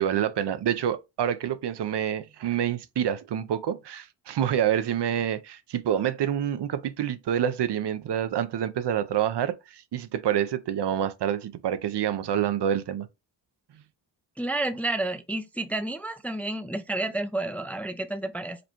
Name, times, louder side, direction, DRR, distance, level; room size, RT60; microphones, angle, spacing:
voice 1, 0.0-13.1 13.7-13.8, right 9 dB, 65° right, 0.6 m, -27 dB
voice 2, 14.4-18.6, right 2 dB, 5° left, 0.4 m, -30 dB
5.1 x 2.2 x 3.0 m
cardioid pair, 65°, 45 cm